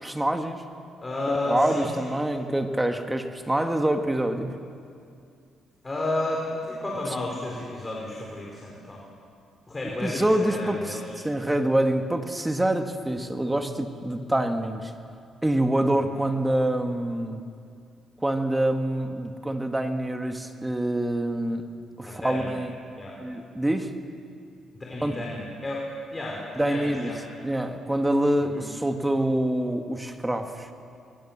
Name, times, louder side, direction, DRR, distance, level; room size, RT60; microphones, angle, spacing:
voice 1, 0.0-0.6 1.3-4.5 10.0-14.9 15.4-17.4 18.2-21.6 22.0-22.7 23.2-23.9 25.0-25.1 26.6-27.1 27.4-30.7, right 1 dB, 10° right, 5 dB, 1.8 m, -26 dB
voice 2, 1.0-2.1 5.8-9.0 9.7-11.0 22.0-22.5 23.0-23.2 24.7-25.8 26.1-27.2 28.5-28.7, left 2 dB, 25° left, -2 dB, 4.6 m, -31 dB
24.5 x 24.0 x 7.4 m, 2.4 s
cardioid pair, 90°, 0 cm